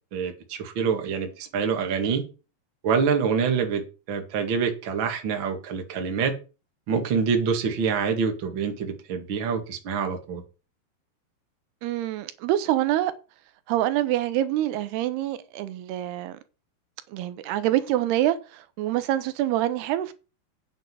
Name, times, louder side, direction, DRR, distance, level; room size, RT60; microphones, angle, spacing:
voice 1, 0.1-2.2 2.8-3.8 4.1-6.3 6.9-10.4, right 6 dB, 40° right, 1.9 m, -26 dB
voice 2, 11.8-13.1 13.7-16.4 17.1-20.1, right 13 dB, 80° right, 2.9 m, -26 dB
9.3 x 7.6 x 6.1 m
omnidirectional pair, 4.6 m